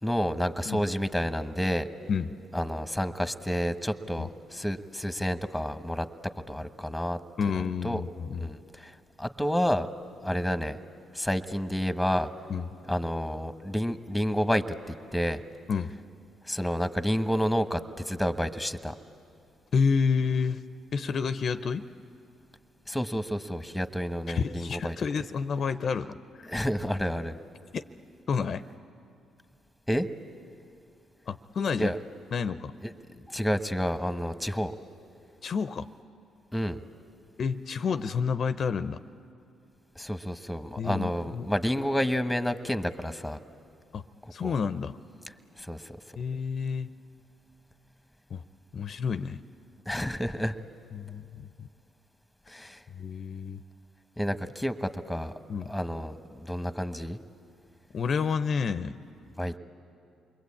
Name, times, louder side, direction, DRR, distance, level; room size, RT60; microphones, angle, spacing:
voice 1, 0.0-1.9 2.5-6.1 6.5-7.2 7.8-8.0 8.4-8.9 9.2-9.9 10.2-10.8 11.1-12.3 12.9-15.4 16.5-17.8 18.1-18.9 22.9-25.0 26.5-27.4 29.9-30.1 31.8-32.0 32.8-32.9 33.3-34.7 36.5-36.8 40.0-43.4 44.4-44.5 45.7-45.8 49.9-50.5 52.5-52.8 54.2-55.3 55.7-57.2 59.4-59.6, equal, 5° left, 10 dB, 1.2 m, -29 dB
voice 2, 7.4-8.5 12.5-12.7 15.7-15.9 19.7-20.6 20.9-21.9 24.3-26.5 27.7-27.8 28.3-28.6 31.3-31.9 32.3-32.7 35.4-35.9 37.4-39.0 40.8-41.5 43.9-44.0 44.3-45.0 46.2-46.9 48.3-48.4 48.7-49.4 50.9-51.7 52.9-53.6 55.5-55.7 57.9-59.0, left 5 dB, 55° left, 11 dB, 0.6 m, -29 dB
28.5 x 22.0 x 8.6 m, 2.6 s
supercardioid pair, 60°, 0 cm